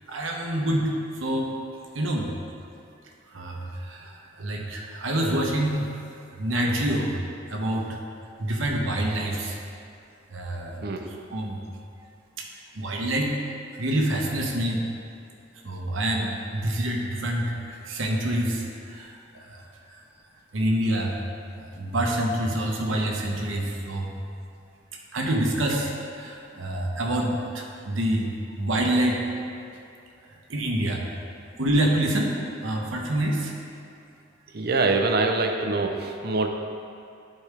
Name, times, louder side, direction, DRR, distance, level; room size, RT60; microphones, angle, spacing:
voice 1, 0.1-0.9 1.2-1.5 1.9-2.3 3.3-4.1 4.4-5.8 6.4-7.1 7.5-7.9 8.4-9.5 10.3-10.7 11.3-11.6 12.8-13.4 13.8-14.8 15.6-17.5 17.9-18.6 19.0-19.1 19.3-19.4 20.5-21.2 21.6-24.1 25.1-25.9 26.2-28.3 28.6-29.2 30.5-31.0 31.6-32.3 32.6-33.5, right 1 dB, 75° right, 0 dB, 1.0 m, -26 dB
voice 2, 10.8-11.1 34.5-36.5, right 3 dB, 50° right, 4 dB, 0.6 m, -24 dB
11.5 x 4.4 x 3.5 m, 2.5 s
head